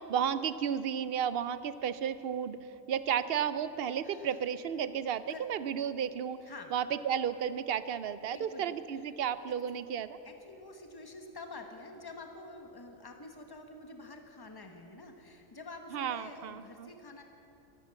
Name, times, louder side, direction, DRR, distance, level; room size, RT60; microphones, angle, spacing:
voice 1, 0.1-2.6 2.9-6.4 6.7-10.2 15.9-16.9, right 8 dB, 65° right, 14 dB, 0.6 m, -33 dB
voice 2, 4.0-4.5 5.3-5.5 6.4-6.7 8.3-9.2 10.2-17.2, left 3 dB, 20° left, 4 dB, 1.2 m, -48 dB
13.0 x 13.0 x 7.5 m, 3.0 s
omnidirectional pair, 1.4 m